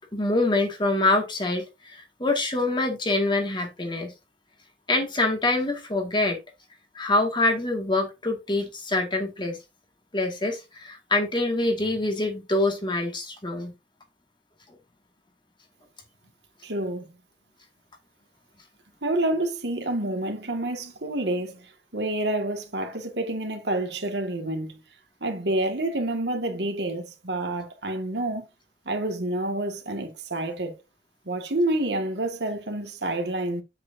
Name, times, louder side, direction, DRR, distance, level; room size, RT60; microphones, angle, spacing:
voice 1, 0.1-4.1 4.9-6.4 6.9-9.6 10.1-13.7, left 2 dB, 25° left, 2.0 m, -25 dB
voice 2, 16.6-17.1 19.0-24.8 25.2-28.5 28.9-30.8 31.3-33.6, right 1 dB, 70° right, 1.9 m, -28 dB
8.1 x 7.7 x 2.7 m
head